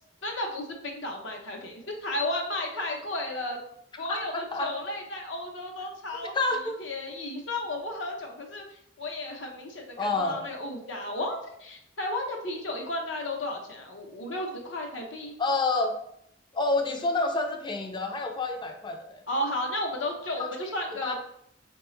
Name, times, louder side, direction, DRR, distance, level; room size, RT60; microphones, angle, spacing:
voice 1, 0.2-3.6 4.0-6.3 6.8-8.6 9.0-15.3 19.3-21.1, left 1 dB, 70° left, 1 dB, 0.7 m, -33 dB
voice 2, 4.1-4.7 6.3-6.8 10.0-10.5 15.4-16.0 16.5-19.2 20.4-20.5 21.0-21.1, left 3 dB, 25° left, 4 dB, 0.4 m, -28 dB
4.7 x 2.2 x 3.1 m, 0.73 s
head